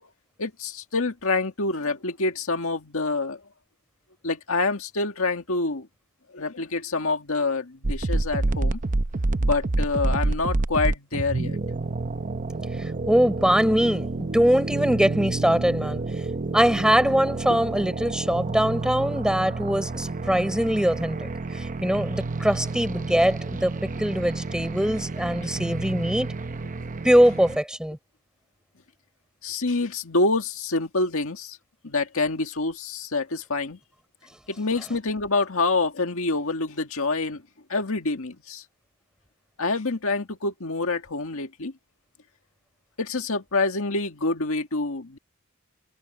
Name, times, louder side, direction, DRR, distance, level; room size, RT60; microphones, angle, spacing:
voice 1, 0.4-3.4 4.2-5.9 6.3-8.8 9.4-11.6 17.5-17.6 25.4-25.5 29.4-31.6 31.8-33.8 34.5-37.4 37.7-38.6 39.6-41.7 43.0-45.2, left 3 dB, 65° left, 2.0 m, -26 dB
sound 1, 7.8-27.6, right 2 dB, 35° right, 0.7 m, -29 dB
voice 2, 12.8-16.0 16.5-21.3 21.5-26.3 27.0-28.0, equal, 5° right, 4.3 m, -22 dB
head